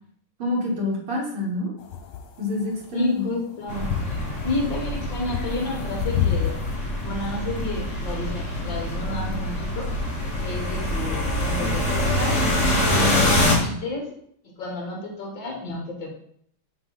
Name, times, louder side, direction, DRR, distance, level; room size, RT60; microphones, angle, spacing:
voice 1, 0.4-1.7 2.4-3.2, left 1 dB, 80° right, -1 dB, 2.4 m, -26 dB
sound 1, 1.8-6.7, left 9 dB, 90° left, 1.8 m, -28 dB
voice 2, 2.9-3.9 4.4-6.6 7.0-9.9 10.4-12.4 13.0-14.1 14.4-16.1, left 2 dB, 60° left, 0 dB, 2.3 m, -31 dB
sound 2, 3.7-13.6, left 1 dB, 40° left, 1.6 m, -25 dB
8.0 x 2.9 x 5.5 m, 0.66 s
omnidirectional pair, 2.3 m